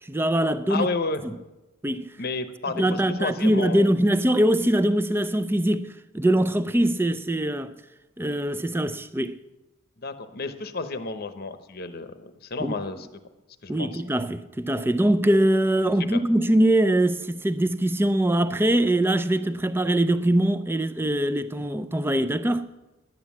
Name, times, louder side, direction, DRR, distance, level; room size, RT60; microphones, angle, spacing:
voice 1, 0.0-0.9 1.2-1.4 1.8-2.2 2.7-7.8 8.2-9.4 12.6-12.7 13.7-22.7, right 1 dB, 10° right, 0.4 m, -23 dB
voice 2, 0.7-1.2 2.2-3.9 10.0-13.1 13.6-13.9 16.1-16.2, left 3 dB, 45° left, 0.8 m, -31 dB
11.5 x 9.4 x 7.1 m
head